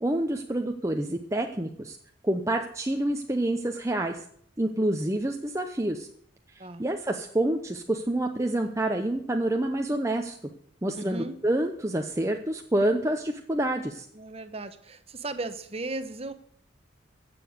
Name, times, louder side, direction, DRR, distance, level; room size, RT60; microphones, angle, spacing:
voice 1, 0.0-2.0 2.2-4.2 4.6-6.1 6.5-10.4 10.8-14.1, right 1 dB, 15° right, 4 dB, 0.7 m, -28 dB
voice 2, 11.0-11.4 14.1-16.3, right 2 dB, 30° right, 11 dB, 1.0 m, -36 dB
15.5 x 7.0 x 7.9 m, 0.63 s
head